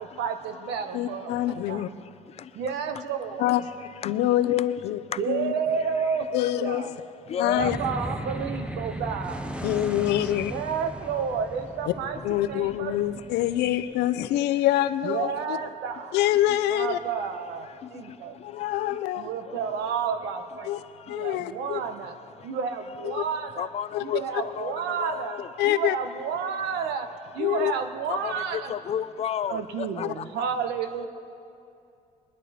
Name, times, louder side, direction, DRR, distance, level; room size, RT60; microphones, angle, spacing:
voice 1, 0.0-1.8 2.5-3.5 5.2-6.9 7.4-9.5 10.5-12.2 12.5-12.9 15.0-16.1 16.7-18.3 19.1-20.7 21.1-22.1 22.4-23.7 24.0-25.4 25.6-27.1 27.3-28.7 29.5-31.1, right 6 dB, 85° right, 8 dB, 1.0 m, -31 dB
voice 2, 0.9-1.9 3.4-3.6 4.0-5.0 5.3-5.5 6.3-7.0 7.4-7.8 9.6-10.5 11.9-12.0 12.2-15.6 16.1-17.0 18.4-19.3 20.6-20.8 21.1-21.8 23.0-23.2 23.9-24.2 25.6-26.0 27.4-27.7 30.0-30.1, left 13 dB, 85° left, 13 dB, 0.6 m, -25 dB
voice 3, 7.3-7.7 23.6-24.7 25.0-25.5 28.1-28.3 28.7-30.1, left 9 dB, 40° left, 16 dB, 0.4 m, -31 dB
sound 1, 7.5-14.1, right 1 dB, 5° right, 0.7 m, -36 dB
20.5 x 11.0 x 4.2 m, 2.5 s
cardioid pair, 110°, 17 cm